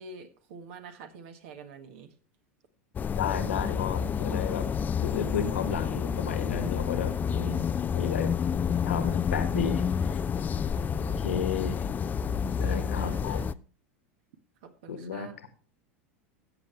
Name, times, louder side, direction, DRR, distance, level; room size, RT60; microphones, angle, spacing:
voice 1, 0.0-2.1 10.8-11.2 12.3-13.5 14.6-15.3, right 5 dB, 65° right, 6 dB, 1.6 m, -47 dB
sound 1, 2.9-13.5, left 7 dB, 25° left, 0.5 m, -29 dB
voice 2, 3.2-4.7 5.0-7.6 7.9-8.3 8.8-10.2 11.2-11.8 12.6-13.5 14.9-15.5, left 7 dB, 80° left, 8 dB, 1.7 m, -33 dB
14.0 x 8.4 x 3.3 m, 0.39 s
hypercardioid pair, 85°, 7 cm